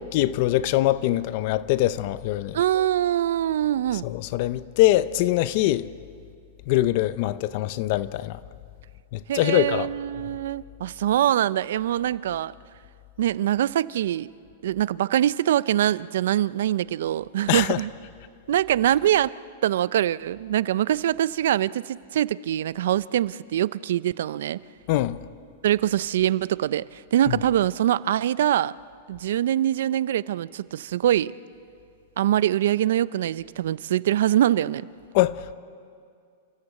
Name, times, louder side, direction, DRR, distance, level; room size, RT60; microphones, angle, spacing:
voice 1, 0.0-2.6 4.0-5.9 6.7-8.4 9.1-9.9 17.5-17.8 24.9-25.2 27.3-27.4 35.1-35.5, left 15 dB, 45° left, 0.6 m, -23 dB
voice 2, 2.5-4.1 9.3-12.5 13.2-14.3 14.6-17.9 18.5-19.4 19.6-24.6 25.6-28.7 29.1-31.3 32.2-34.9, right 11 dB, 70° right, 0.5 m, -23 dB
29.5 x 15.0 x 8.2 m
supercardioid pair, 155°, 0 cm